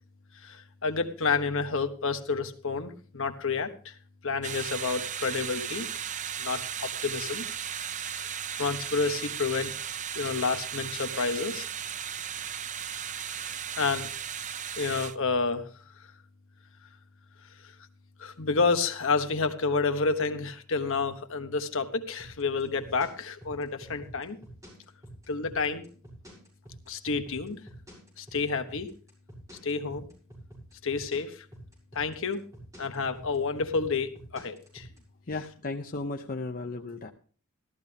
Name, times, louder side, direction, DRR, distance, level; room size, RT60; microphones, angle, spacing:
voice 1, 0.4-3.9 4.2-5.9 6.4-7.4 8.1-8.3 8.5-9.7 10.1-11.6 13.3-14.1 14.8-15.7 18.2-24.4 25.3-25.9 26.9-27.6 28.2-28.9 29.6-30.1 30.8-31.4 31.9-32.4 32.8-34.9, left 4 dB, 60° left, 7 dB, 1.3 m, -29 dB
sound 1, 4.4-15.2, right 8 dB, 35° right, 0.5 m, -36 dB
sound 2, 22.2-35.0, right 1 dB, 15° right, 6.7 m, -48 dB
voice 2, 35.3-37.1, left 2 dB, 40° left, 3 dB, 0.8 m, -35 dB
14.5 x 13.5 x 3.5 m, 0.40 s
head